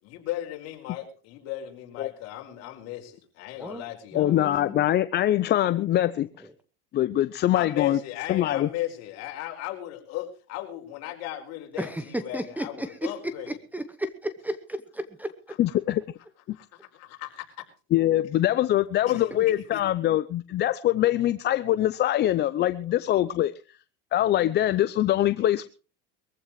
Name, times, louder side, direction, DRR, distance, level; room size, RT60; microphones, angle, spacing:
voice 1, 0.0-4.5 7.5-13.6 15.5-15.8 16.5-17.5 19.0-19.8, left 13 dB, 55° left, 2 dB, 4.9 m, -37 dB
voice 2, 3.6-4.8 11.8-15.3, right 1 dB, 5° right, 12 dB, 0.9 m, -34 dB
voice 3, 4.1-6.3 6.9-8.0 8.3-8.7 15.6-16.0 16.5-16.6 17.9-23.5 24.1-25.7, left 13 dB, 35° left, 13 dB, 0.6 m, -23 dB
22.0 x 15.0 x 3.1 m, 0.35 s
supercardioid pair, 125°, 31 cm